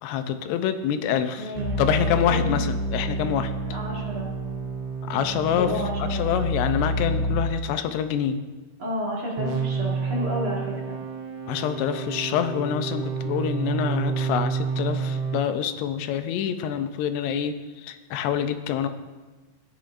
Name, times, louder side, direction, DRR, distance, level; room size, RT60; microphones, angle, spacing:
voice 1, 0.0-1.4 1.8-3.5 5.0-5.7 6.0-8.4 11.5-17.6 17.8-18.9, left 9 dB, 85° left, 9 dB, 2.7 m, -26 dB
voice 2, 1.4-2.6 3.7-4.3 5.6-6.2 8.8-11.0, equal, 45° right, -5 dB, 1.8 m, -31 dB
sound 1, 1.6-7.5 9.4-15.5, right 3 dB, 90° right, 3.3 m, -28 dB
15.0 x 9.8 x 2.6 m, 1.2 s
omnidirectional pair, 4.8 m